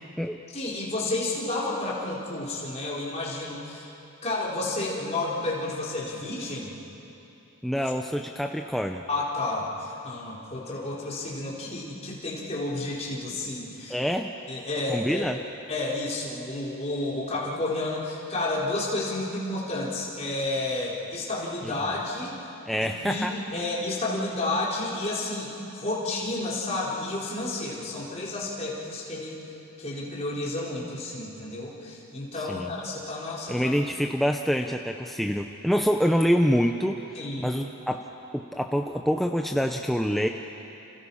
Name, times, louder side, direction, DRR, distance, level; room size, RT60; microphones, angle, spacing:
voice 1, 0.5-3.9 4.2-6.7 7.7-7.8 9.1-14.0 14.5-15.3 15.7-22.4 22.8-29.4 29.8-33.7 37.1-37.5, left 2 dB, 30° left, -5 dB, 4.6 m, -31 dB
voice 2, 7.6-9.0 13.9-14.3 14.9-15.4 21.6-21.7 22.7-23.6 32.5-32.7 33.5-38.0 38.3-40.3, equal, ahead, 3 dB, 0.6 m, -26 dB
29.5 x 29.0 x 5.7 m, 3.0 s
head